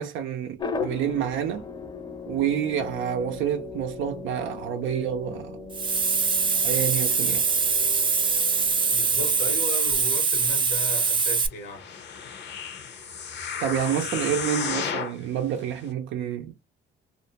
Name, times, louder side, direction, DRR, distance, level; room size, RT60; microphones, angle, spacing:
voice 1, 0.0-1.6 2.3-5.6 6.6-7.5 13.6-16.6, right 9 dB, 85° right, 0.4 m, -28 dB
sound 1, 0.6-9.7, left 4 dB, 20° left, 0.6 m, -38 dB
Hiss, 5.7-11.5, right 5 dB, 25° right, 0.4 m, -23 dB
voice 2, 8.9-12.3, left 3 dB, 85° left, 1.2 m, -36 dB
sound 2, 11.7-15.2 15.8-15.9, left 6 dB, 60° left, 0.7 m, -33 dB
2.5 x 2.1 x 2.8 m
cardioid pair, 90°, 20 cm